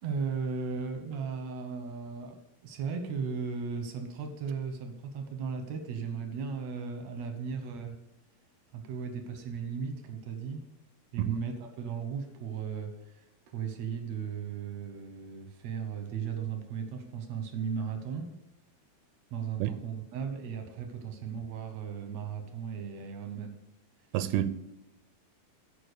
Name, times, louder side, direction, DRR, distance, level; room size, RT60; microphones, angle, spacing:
voice 1, 0.0-8.0 8.7-10.6 11.1-18.3 19.3-23.6, right 6 dB, 70° right, 1.6 m, -36 dB
voice 2, 24.1-24.5, right 12 dB, 90° right, 2.5 m, -29 dB
11.0 x 5.1 x 6.7 m
omnidirectional pair, 4.3 m